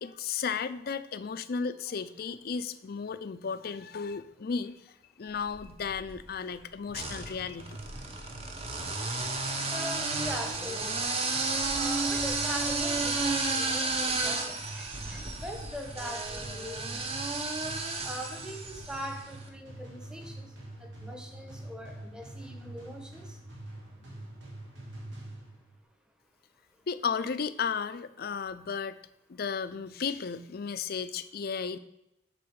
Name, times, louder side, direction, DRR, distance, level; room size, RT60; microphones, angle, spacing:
voice 1, 0.0-4.7 5.2-7.8 26.9-29.0 29.3-31.8, left 6 dB, 55° left, 13 dB, 0.4 m, -34 dB
sound 1, 5.5-6.2 6.9-19.2, right 3 dB, 30° right, 0.9 m, -32 dB
sound 2, 6.8-25.8, right 1 dB, 85° right, 2.8 m, -46 dB
voice 2, 9.7-11.0 11.7-17.1 17.5-17.6 18.0-23.4, equal, 5° right, 4 dB, 1.0 m, -41 dB
8.6 x 4.1 x 6.4 m, 0.84 s
head